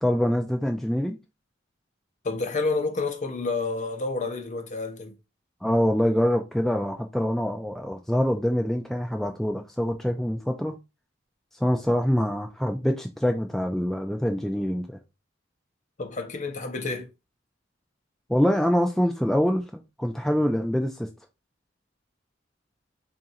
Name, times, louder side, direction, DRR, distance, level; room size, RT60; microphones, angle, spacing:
voice 1, 0.0-1.2 5.6-10.8 11.6-14.9 18.3-21.1, equal, ahead, 0.4 m, -25 dB
voice 2, 2.2-5.1 16.0-17.1, left 3 dB, 40° left, 0.7 m, -29 dB
3.8 x 2.5 x 4.1 m
head